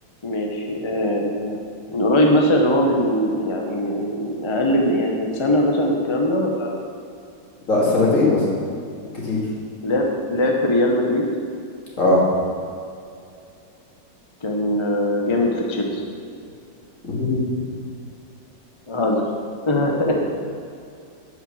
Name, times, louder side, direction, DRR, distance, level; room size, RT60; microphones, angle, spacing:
voice 1, 0.2-1.6 1.9-6.8 9.8-11.3 14.4-16.0 18.9-19.3 19.7-20.1, left 1 dB, 25° left, 0 dB, 0.6 m, -21 dB
voice 2, 7.7-8.5 9.2-9.4 12.0-12.2 17.0-17.4 20.1-20.2, left 2 dB, 45° left, -5 dB, 2.6 m, -19 dB
7.5 x 6.8 x 7.1 m, 2.5 s
omnidirectional pair, 2.0 m